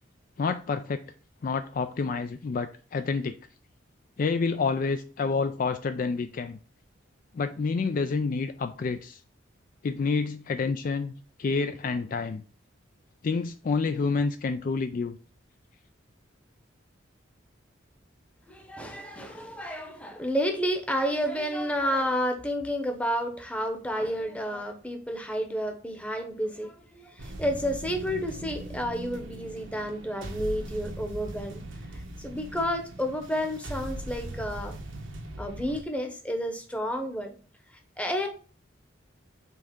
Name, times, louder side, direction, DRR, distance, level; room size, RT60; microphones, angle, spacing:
voice 1, 0.4-1.0 1.4-3.4 4.2-6.6 7.3-9.2 9.8-11.1 11.4-12.4 13.2-15.2, left 4 dB, 45° left, 9 dB, 0.3 m, -28 dB
voice 2, 18.5-31.6 32.2-34.8 35.4-37.3 38.0-38.3, equal, 5° left, 4 dB, 0.8 m, -30 dB
sound 1, 27.2-35.8, right 1 dB, 75° right, 1.1 m, -40 dB
5.5 x 3.6 x 5.2 m, 0.39 s
head